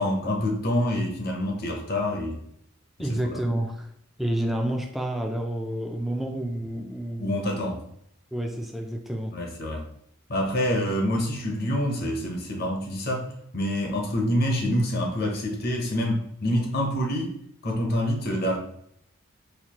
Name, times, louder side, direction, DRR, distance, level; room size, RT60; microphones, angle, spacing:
voice 1, 0.0-2.4 3.1-3.4 7.2-7.8 9.3-9.8 10.3-13.3 13.5-17.4 17.6-18.6, left 1 dB, 50° left, 1 dB, 0.7 m, -26 dB
voice 2, 3.0-3.9 4.2-7.3 8.3-9.4, right 1 dB, ahead, 2 dB, 0.3 m, -29 dB
4.3 x 2.5 x 2.9 m, 0.71 s
head